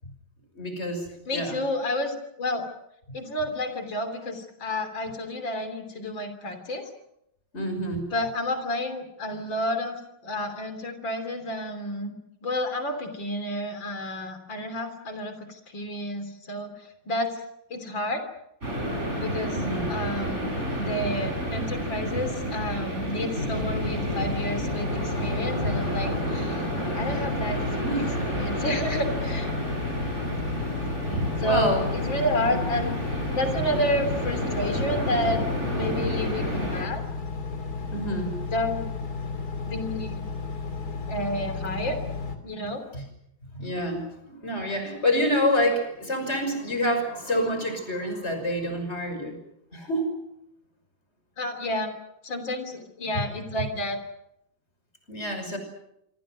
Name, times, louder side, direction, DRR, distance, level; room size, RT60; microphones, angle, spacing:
voice 1, 0.5-1.6 7.5-8.1 19.6-19.9 27.8-28.1 30.0-30.1 31.1-31.8 34.7-34.8 37.9-38.3 42.9-43.0 43.5-49.4 49.7-50.1 53.1-53.2 55.1-55.6, equal, 35° left, 6 dB, 6.2 m, -27 dB
voice 2, 1.3-2.7 3.1-6.9 8.1-12.1 12.4-16.7 17.1-17.4 17.7-18.2 19.2-19.6 19.9-26.7 26.9-27.6 28.3-29.6 31.4-32.9 33.3-35.5 35.7-37.0 38.5-38.9 39.6-40.3 41.1-42.0 42.4-42.8 51.4-51.9 52.2-54.0, left 1 dB, 80° left, 7 dB, 3.9 m, -30 dB
sound 1, 18.6-36.8, equal, 35° right, 6.5 m, -30 dB
Engine, 23.5-42.4, left 4 dB, 55° left, 3.2 m, -33 dB
26.5 x 25.5 x 6.4 m, 0.79 s
omnidirectional pair, 2.0 m